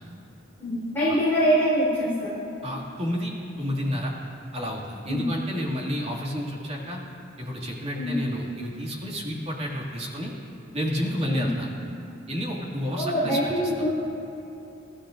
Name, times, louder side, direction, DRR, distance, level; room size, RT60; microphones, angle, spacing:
voice 1, 0.6-2.4 5.1-5.2 8.0-8.1 11.3-11.5 13.0-13.9, equal, 10° left, -11 dB, 3.7 m, -24 dB
voice 2, 2.6-3.3 3.6-4.1 4.5-7.0 7.4-10.3 10.7-11.7 12.3-13.7, equal, 30° right, -3 dB, 2.3 m, -30 dB
27.5 x 14.0 x 2.6 m, 3.0 s
head